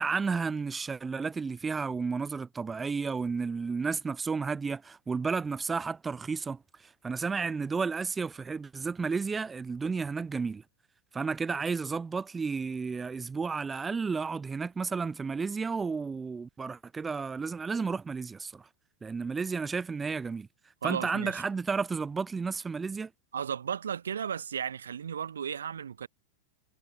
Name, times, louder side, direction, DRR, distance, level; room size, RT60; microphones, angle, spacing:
voice 1, 0.0-10.6 11.1-18.7 19.0-20.5 20.8-23.1, right 5 dB, 15° right, 4.9 m, -32 dB
voice 2, 20.8-21.4 23.3-26.1, right 8 dB, 70° right, 7.3 m, -34 dB
figure-of-eight pair, 90°, 0 cm